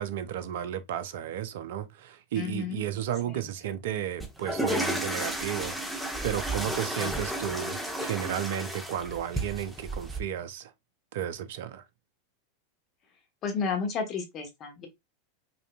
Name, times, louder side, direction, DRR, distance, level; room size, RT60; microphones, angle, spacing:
voice 1, 0.0-10.7 11.1-11.8, right 10 dB, 65° right, 0.5 m, -33 dB
voice 2, 2.4-2.8 3.3-3.4 7.0-7.5 13.4-14.9, left 5 dB, 35° left, 1.3 m, -32 dB
sound 1, 4.2-10.2, right 1 dB, 5° right, 1.0 m, -32 dB
5.1 x 2.6 x 2.3 m
figure-of-eight pair, 90°, 0 cm